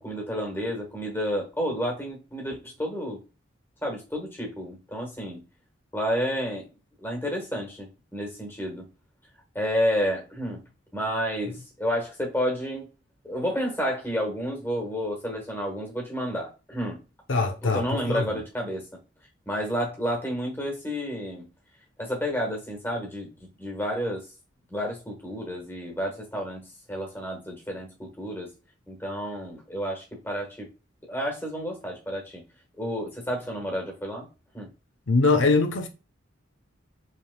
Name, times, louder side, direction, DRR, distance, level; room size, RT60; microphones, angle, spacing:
voice 1, 0.0-3.2 3.8-5.4 5.9-6.6 7.0-8.9 9.5-10.6 10.9-12.9 13.2-17.0 17.6-18.8 19.5-21.4 22.0-23.3 23.6-24.2 24.7-28.5 28.9-30.7 31.1-32.4 32.8-34.3 34.5-34.7, equal, 10° left, 1.3 m, -30 dB
voice 2, 17.3-18.2 35.1-35.9, left 3 dB, 75° left, 0.7 m, -22 dB
5.2 x 3.4 x 2.2 m
head